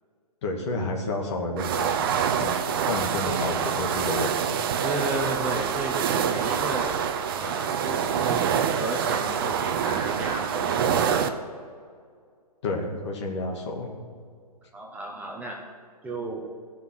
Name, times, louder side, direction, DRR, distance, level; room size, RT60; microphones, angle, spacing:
voice 1, 0.4-4.6 12.6-13.9, left 2 dB, 45° left, 1 dB, 2.0 m, -30 dB
sound 1, 1.6-11.3, right 8 dB, 35° right, 0.7 m, -26 dB
voice 2, 3.2-3.5 4.8-7.0 7.3-11.4 14.7-15.6 16.0-16.4, right 1 dB, 5° right, -2 dB, 1.0 m, -33 dB
16.5 x 5.9 x 6.2 m, 2.1 s
figure-of-eight pair, 130°, 20 cm